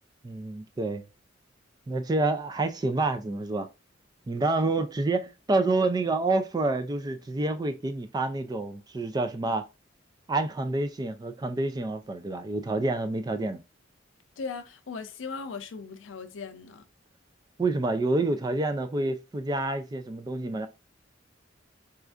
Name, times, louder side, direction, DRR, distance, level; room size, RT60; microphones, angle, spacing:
voice 1, 0.2-1.0 1.9-3.7 4.3-9.7 10.3-13.6 17.6-20.7, right 2 dB, 20° right, 0.3 m, -28 dB
voice 2, 14.4-16.9, left 4 dB, 80° left, 0.5 m, -38 dB
4.2 x 2.4 x 2.4 m
head